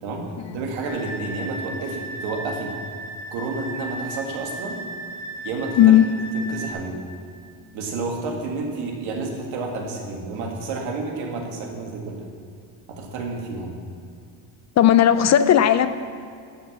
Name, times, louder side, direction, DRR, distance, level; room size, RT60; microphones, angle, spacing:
voice 1, 0.0-2.7 3.3-4.8 5.4-6.0 6.3-7.0 7.7-12.3 12.9-13.7, right 3 dB, 80° right, 0 dB, 2.1 m, -30 dB
sound 1, 0.9-6.7, right 1 dB, 75° left, 1.9 m, -35 dB
voice 2, 14.8-15.9, left 10 dB, 40° left, 12 dB, 0.4 m, -14 dB
11.5 x 4.9 x 7.2 m, 2.4 s
cardioid pair, 105°, 46 cm